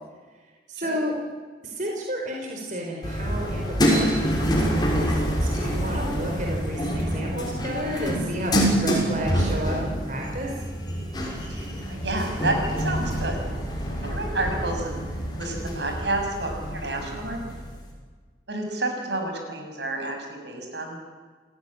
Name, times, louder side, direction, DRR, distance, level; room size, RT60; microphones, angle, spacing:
voice 1, 0.7-1.1 1.6-10.5, equal, 45° right, 0 dB, 4.5 m, -31 dB
sound 1, 3.0-17.8, equal, 25° left, 6.0 m, -27 dB
voice 2, 11.5-13.4 14.0-15.0 15.4-17.4 18.5-21.0, right 2 dB, 75° right, 3 dB, 6.7 m, -30 dB
29.0 x 17.0 x 10.0 m, 1.5 s
head